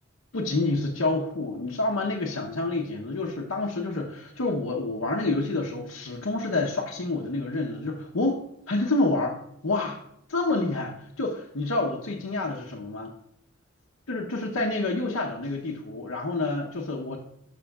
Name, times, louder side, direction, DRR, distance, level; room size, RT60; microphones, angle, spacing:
voice 1, 0.3-9.4 9.6-10.0 10.3-13.1 14.1-17.2, left 2 dB, 90° left, -2 dB, 0.9 m, -28 dB
12.5 x 6.2 x 2.4 m, 0.75 s
head